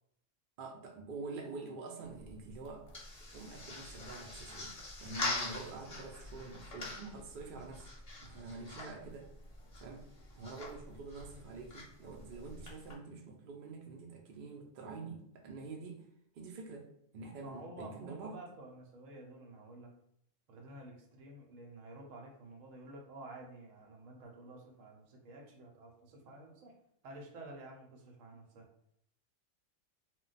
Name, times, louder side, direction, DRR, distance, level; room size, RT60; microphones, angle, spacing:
voice 1, 0.6-2.9 3.3-4.7 5.0-7.9 8.2-9.3 9.8-10.1 10.4-16.0 16.4-16.9 17.1-18.4, right 4 dB, 65° right, 1 dB, 0.5 m, -46 dB
sound 1, 2.0-12.9, left 2 dB, 35° left, 0.7 m, -44 dB
voice 2, 17.4-20.0 20.5-26.7 27.0-28.7, right 2 dB, 85° right, 1 dB, 1.0 m, -51 dB
2.2 x 2.2 x 3.8 m, 0.72 s
omnidirectional pair, 1.3 m